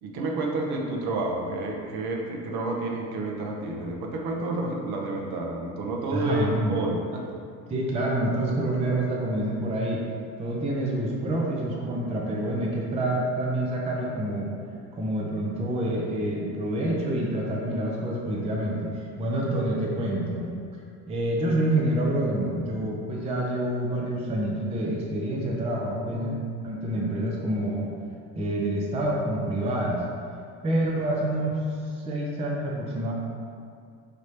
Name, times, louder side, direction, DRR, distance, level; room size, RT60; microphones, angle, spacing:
voice 1, 0.0-7.4 26.1-26.3, right 2 dB, 50° right, 0 dB, 0.8 m, -30 dB
voice 2, 6.1-6.7 7.7-10.0 10.4-14.5 14.9-20.5 21.1-27.9 28.4-30.0 30.6-31.6 31.9-33.1, right 1 dB, 15° right, -2 dB, 0.5 m, -27 dB
5.0 x 3.0 x 2.8 m, 2.3 s
hypercardioid pair, 70°, 48 cm